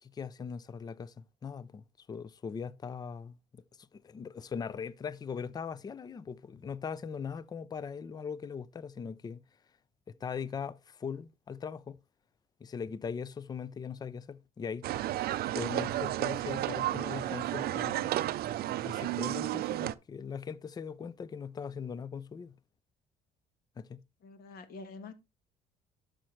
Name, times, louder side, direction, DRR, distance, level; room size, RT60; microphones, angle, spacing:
voice 1, 0.0-1.8 2.1-9.4 10.2-12.0 12.6-18.2 18.8-22.5 23.8-24.0, left 6 dB, 25° left, 0.4 m, -40 dB
sound 1, 14.8-19.9, right 14 dB, 65° right, 0.5 m, -32 dB
voice 2, 17.1-17.5 24.2-25.1, left 3 dB, 65° left, 1.4 m, -47 dB
10.0 x 6.4 x 3.1 m
cardioid pair, 110°, 17 cm